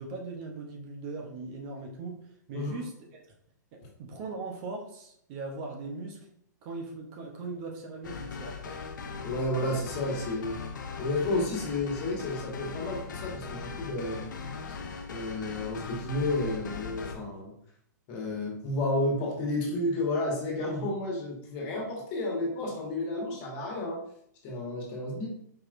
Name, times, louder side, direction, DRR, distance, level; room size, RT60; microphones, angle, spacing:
voice 1, 0.0-2.9 3.7-6.2 6.6-8.8, right 3 dB, 40° right, 1 dB, 0.8 m, -39 dB
sound 1, 8.0-17.1, left 5 dB, 75° left, 0.6 m, -39 dB
voice 2, 9.2-10.6 11.0-14.2 15.1-17.5 18.1-24.0 24.4-25.3, left 2 dB, 40° left, -2 dB, 1.5 m, -31 dB
4.8 x 3.0 x 2.5 m, 0.70 s
hypercardioid pair, 135°, 10 cm